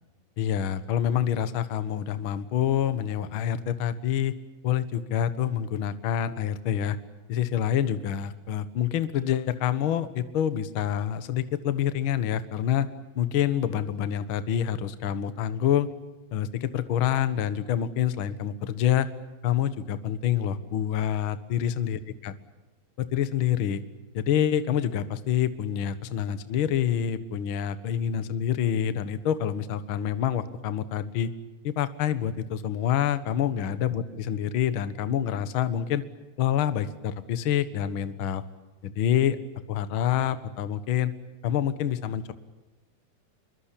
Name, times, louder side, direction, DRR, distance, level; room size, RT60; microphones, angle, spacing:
voice 1, 0.4-4.3 4.6-7.0 7.3-12.9 13.1-15.9 16.3-19.1 19.4-22.3 23.0-23.8 24.1-31.3 31.6-36.0 36.4-38.4 38.8-39.4 39.7-41.1 41.4-42.3, left 10 dB, 60° left, 12 dB, 1.3 m, -27 dB
26.5 x 23.5 x 8.5 m, 1.1 s
omnidirectional pair, 4.3 m